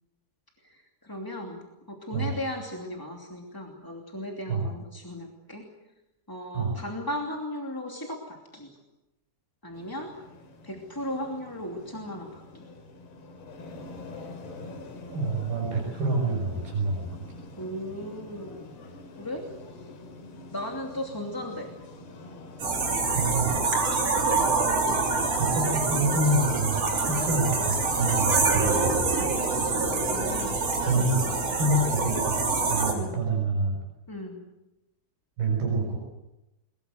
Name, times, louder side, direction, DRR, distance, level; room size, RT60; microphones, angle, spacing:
voice 1, 0.6-5.6 6.3-8.8 9.6-10.1 10.6-12.7 17.6-18.7 19.2-19.4 20.5-21.7 24.0-24.3 29.5-30.6 32.9-33.2 34.1-34.4, left 1 dB, 5° left, 0 dB, 1.9 m, -37 dB
sound 1, 9.7-23.0, left 2 dB, 80° left, 5.2 m, -45 dB
voice 2, 15.1-17.1 23.1-23.5 25.4-29.1 30.8-31.3 31.6-33.8 35.4-36.0, right 2 dB, 70° right, 0 dB, 8.1 m, -27 dB
sound 2, 22.6-32.9, right 3 dB, 40° right, 4.1 m, -26 dB
22.5 x 22.0 x 7.9 m, 0.93 s
omnidirectional pair, 4.5 m